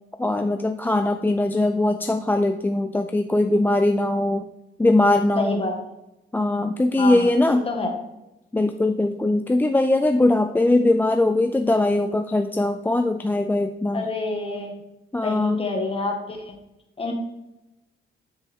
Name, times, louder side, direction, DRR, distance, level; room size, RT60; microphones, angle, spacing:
voice 1, 0.2-4.4 4.8-5.6 6.3-7.7 8.5-14.0 15.1-15.6, left 2 dB, 10° left, 7 dB, 0.4 m, -21 dB
voice 2, 5.4-5.9 7.0-7.3 7.7-7.9 13.9-14.7 15.2-16.5 17.0-17.1, left 3 dB, 30° left, 2 dB, 1.8 m, -27 dB
9.7 x 5.3 x 3.6 m, 0.92 s
cardioid pair, 90°, 20 cm